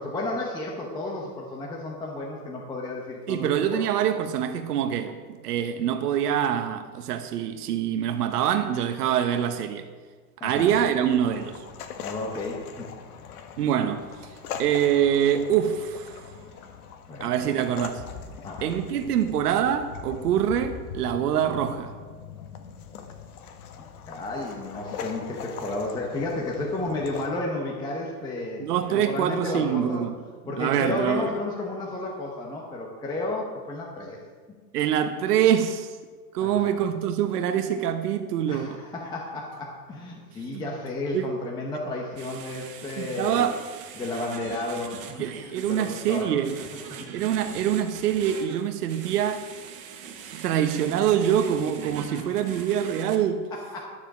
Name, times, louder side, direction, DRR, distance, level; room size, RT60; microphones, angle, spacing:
voice 1, 0.0-3.8 10.4-10.8 12.0-12.9 17.1-17.6 18.4-18.7 24.1-30.1 30.5-34.2 36.4-36.8 38.5-43.5 44.0-45.3 45.6-46.3 52.0-52.6 53.5-53.9, left 2 dB, 10° left, 0.9 m, -32 dB
voice 2, 3.3-9.9 10.4-11.6 13.6-16.2 17.2-18.0 18.6-21.9 28.6-30.2 30.6-31.3 34.7-36.0 36.3-38.8 40.5-40.6 41.1-41.3 43.0-43.6 45.2-46.6 47.1-49.5 50.4-53.4, right 9 dB, 75° right, 1.0 m, -25 dB
sound 1, 10.5-27.3, left 7 dB, 65° left, 1.5 m, -41 dB
sound 2, 42.2-53.2, right 7 dB, 15° right, 0.5 m, -42 dB
11.5 x 7.4 x 6.1 m
supercardioid pair, 155°, 47 cm